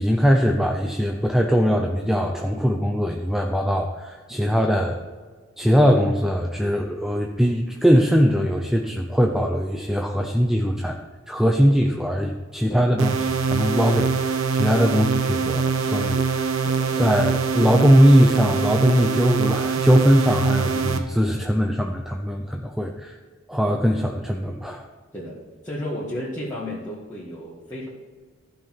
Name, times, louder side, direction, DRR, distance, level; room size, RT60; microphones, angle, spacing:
voice 1, 0.0-5.0 5.6-11.0 11.3-16.5 17.0-23.1 23.5-24.9, equal, ahead, 2 dB, 0.6 m, -21 dB
sound 1, 13.0-21.0, right 5 dB, 85° right, 1.0 m, -24 dB
voice 2, 16.6-16.9 25.1-25.4 25.6-27.9, left 1 dB, 15° left, -8 dB, 1.8 m, -33 dB
14.5 x 5.7 x 4.6 m, 1.4 s
head